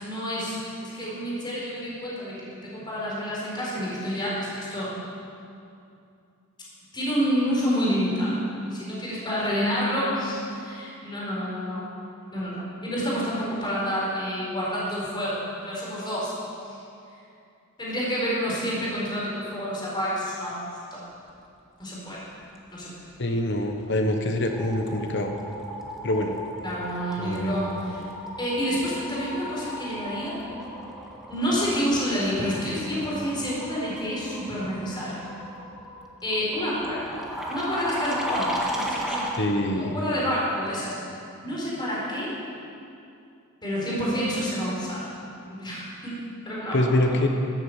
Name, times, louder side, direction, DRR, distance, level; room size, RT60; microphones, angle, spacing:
voice 1, 0.0-4.9 6.9-11.8 12.3-16.3 16.6-16.8 17.8-20.6 20.9-21.1 21.8-22.2 22.7-22.9 26.6-28.0 28.4-30.4 31.3-35.1 36.2-37.0 37.5-39.3 39.7-40.9 41.4-42.3 43.6-45.1 45.5-47.0, equal, 20° left, -6 dB, 4.3 m, -28 dB
voice 2, 23.2-25.3 26.0-26.3 27.2-27.5 39.3-39.9 46.7-47.3, left 1 dB, 55° left, 4 dB, 1.2 m, -25 dB
sound 1, 23.6-23.9 24.2-39.5, equal, ahead, 1.7 m, -36 dB
14.5 x 9.0 x 8.1 m, 2.6 s
head